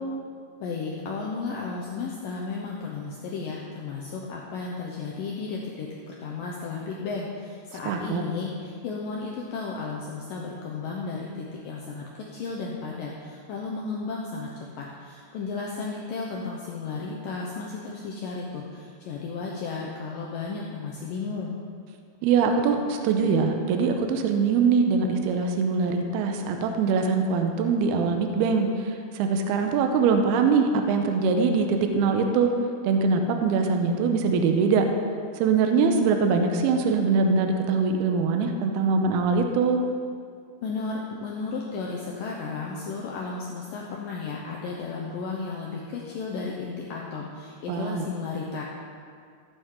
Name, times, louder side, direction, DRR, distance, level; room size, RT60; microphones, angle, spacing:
voice 1, 0.6-14.5 14.8-21.6 40.6-48.6, left 4 dB, 80° left, -2 dB, 2.0 m, -34 dB
voice 2, 7.9-8.2 22.2-32.5 32.8-34.9 35.4-39.8 47.7-48.1, right 5 dB, 75° right, 5 dB, 2.6 m, -23 dB
15.0 x 8.2 x 3.8 m, 2.2 s
omnidirectional pair, 5.0 m